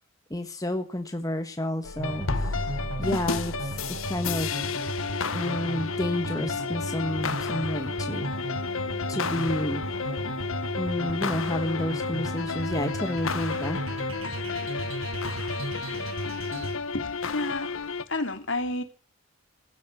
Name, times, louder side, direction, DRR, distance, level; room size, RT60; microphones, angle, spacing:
voice 1, 0.3-2.7 3.0-4.7 5.3-8.3 9.1-9.8 10.8-13.8, left 1 dB, 15° left, 1.3 m, -30 dB
sound 1, 1.8-18.0, left 4 dB, 80° left, 1.3 m, -32 dB
sound 2, 2.0-16.8, right 2 dB, 75° right, 5.0 m, -35 dB
voice 2, 16.9-17.7 18.1-18.8, left 2 dB, 60° left, 2.9 m, -31 dB
16.0 x 13.0 x 6.8 m
head